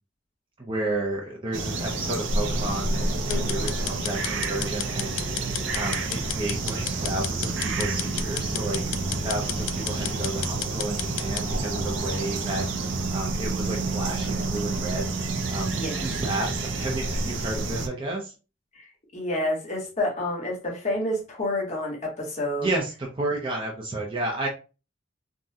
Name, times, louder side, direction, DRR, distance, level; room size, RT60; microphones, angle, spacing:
voice 1, 0.6-5.2 5.7-8.8 9.2-12.6 13.1-15.1 15.5-18.3 22.6-24.5, right 2 dB, 25° right, 0.6 m, -31 dB
sound 1, 1.5-17.9, right 3 dB, 70° right, 0.6 m, -29 dB
sound 2, 3.3-11.5, left 12 dB, 85° left, 0.3 m, -34 dB
voice 2, 3.3-3.8 15.7-16.0 18.7-18.8 19.1-22.7, left 1 dB, 40° left, 0.9 m, -29 dB
3.6 x 2.2 x 2.7 m
head